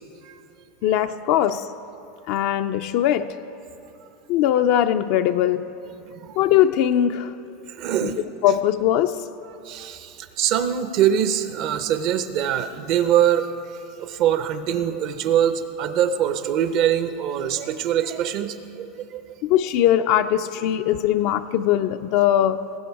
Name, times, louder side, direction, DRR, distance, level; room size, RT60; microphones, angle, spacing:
voice 1, 0.8-1.7 2.3-3.4 4.3-5.6 6.4-7.4 8.0-8.1 8.4-9.3 19.4-22.7, left 11 dB, 60° left, 7 dB, 0.4 m, -20 dB
voice 2, 7.7-8.2 9.7-13.5 14.0-19.4, right 10 dB, 55° right, 11 dB, 0.7 m, -23 dB
19.0 x 8.3 x 4.7 m, 2.8 s
supercardioid pair, 120°, 0 cm